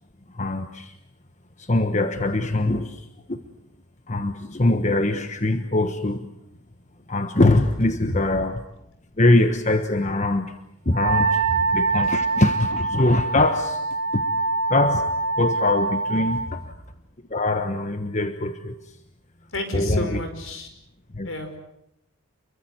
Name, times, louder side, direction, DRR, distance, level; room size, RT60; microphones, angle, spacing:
voice 1, 0.3-1.0 1.6-3.4 4.1-6.3 7.1-8.6 9.2-10.5 10.8-11.4 11.7-13.8 14.1-14.2 14.7-15.1 15.4-16.8 17.3-19.0 19.7-20.2 21.1-21.3, left 2 dB, 35° left, 8 dB, 1.2 m, -23 dB
Wind instrument woodwind instrument, 10.9-16.5, right 3 dB, 80° right, 4.1 m, -24 dB
voice 2, 19.5-20.7 21.2-21.6, left 1 dB, 65° left, 7 dB, 5.5 m, -28 dB
29.0 x 23.0 x 8.0 m, 0.81 s
head